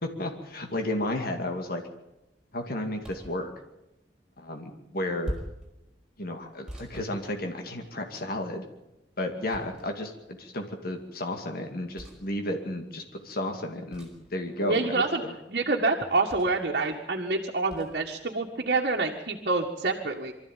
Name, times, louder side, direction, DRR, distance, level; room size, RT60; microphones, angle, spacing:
voice 1, 0.0-1.8 2.5-3.5 4.4-5.3 6.2-8.7 9.2-15.3, left 1 dB, 55° left, 4 dB, 2.4 m, -33 dB
sound 1, 3.0-3.4 5.2-5.7 6.7-7.8 9.5-10.1 11.9-12.2 13.9-14.3 16.3-16.7 17.7-17.9, equal, 5° right, 5.4 m, -40 dB
voice 2, 14.6-15.2 15.5-20.3, right 3 dB, 55° right, 0 dB, 1.8 m, -27 dB
24.0 x 14.0 x 9.1 m, 0.92 s
head